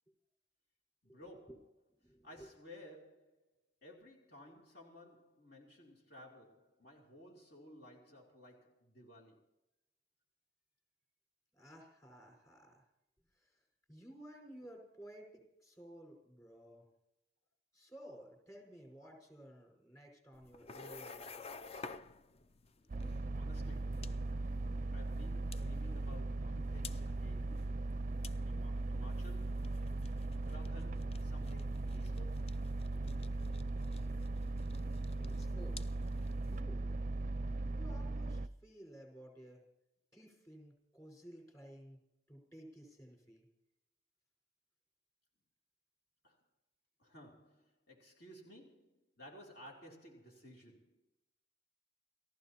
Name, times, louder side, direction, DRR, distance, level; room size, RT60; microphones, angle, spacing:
voice 1, 1.0-1.7 2.2-3.4 3.8-9.4 23.3-24.2 24.9-27.7 28.5-29.8 30.3-32.6 46.2-46.4 47.0-51.0, left 1 dB, 60° left, 3.2 m, -57 dB
voice 2, 2.0-2.5 11.5-12.8 13.4-13.5 13.9-16.9 17.7-21.8 35.2-36.1 36.4-37.0 37.7-39.6 40.1-43.5, equal, 20° left, 5.2 m, -55 dB
sound 1, 20.3-36.6, left 4 dB, 35° left, 0.5 m, -54 dB
sound 2, 22.9-38.5, right 2 dB, 45° right, 0.5 m, -38 dB
29.5 x 15.0 x 3.0 m
head